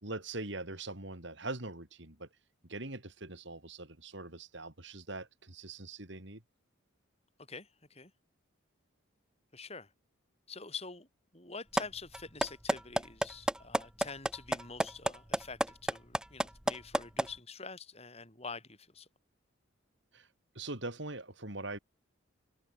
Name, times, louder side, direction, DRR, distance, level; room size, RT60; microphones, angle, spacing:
voice 1, 0.0-2.3 2.7-6.4 20.1-20.3 20.5-21.8, right 2 dB, 60° right, 3.4 m, -42 dB
voice 2, 7.5-8.1 9.5-9.9 10.5-11.1 11.3-19.1, left 4 dB, 30° left, 4.1 m, -46 dB
sound 1, 11.8-11.9 12.1-17.3, right 1 dB, 5° right, 0.6 m, -29 dB
head